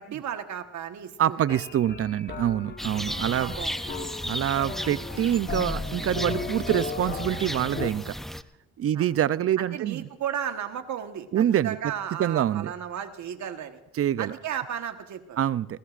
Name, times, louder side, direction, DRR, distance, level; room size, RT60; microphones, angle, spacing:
voice 1, 0.0-1.6 3.2-4.1 8.9-9.1 9.6-13.8 14.2-15.4, right 9 dB, 70° right, 7 dB, 1.4 m, -34 dB
voice 2, 1.2-3.5 4.3-8.1 8.8-10.1 11.3-11.8 12.2-12.7 13.9-14.3 15.4-15.8, right 11 dB, 50° right, 17 dB, 0.6 m, -25 dB
sound 1, 1.5-7.9, left 4 dB, 35° left, 1.3 m, -36 dB
sound 2, 2.8-8.4, equal, ahead, 0.5 m, -35 dB
20.5 x 20.0 x 2.5 m, 0.97 s
cardioid pair, 90°, 30 cm